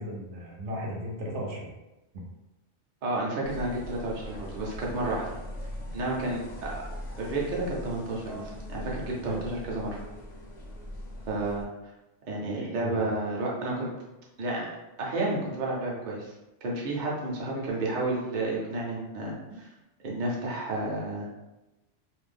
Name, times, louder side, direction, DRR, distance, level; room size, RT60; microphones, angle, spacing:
voice 1, 0.0-1.7 2.1-2.2 9.3-9.4 12.4-13.1, equal, 75° right, -2 dB, 0.9 m, -36 dB
voice 2, 3.0-5.2 5.9-6.7 7.2-10.0 11.3-11.7 12.3-13.9 14.4-14.7 15.0-16.3 16.6-19.7 20.0-21.3, right 2 dB, 50° right, -3 dB, 0.7 m, -31 dB
sound 1, 3.4-11.6, left 1 dB, 50° left, 0.5 m, -41 dB
2.6 x 2.0 x 3.3 m, 0.99 s
omnidirectional pair, 1.3 m